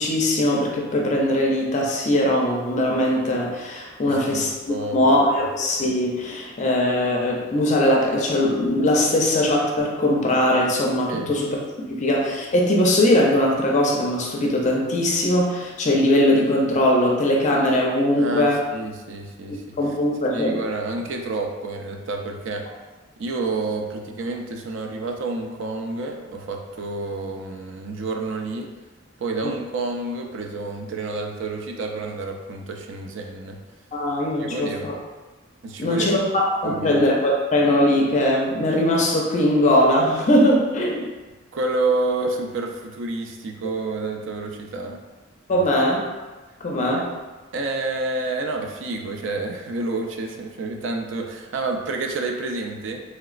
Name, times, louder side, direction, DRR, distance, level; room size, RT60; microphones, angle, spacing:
voice 1, 0.0-4.5 4.9-11.6 11.9-18.6 19.8-20.6 33.9-35.0 35.8-41.1 45.5-46.0 46.6-47.1, left 1 dB, 35° left, -2 dB, 0.4 m, -20 dB
voice 2, 4.0-5.0 11.1-11.3 18.2-19.9 20.3-22.7 23.2-28.7 29.2-33.6 34.4-35.0 35.6-36.1 36.6-37.0 41.5-45.0 45.5-45.6 47.5-53.0, right 3 dB, 65° right, 3 dB, 0.4 m, -29 dB
3.1 x 2.9 x 2.4 m, 1.2 s
head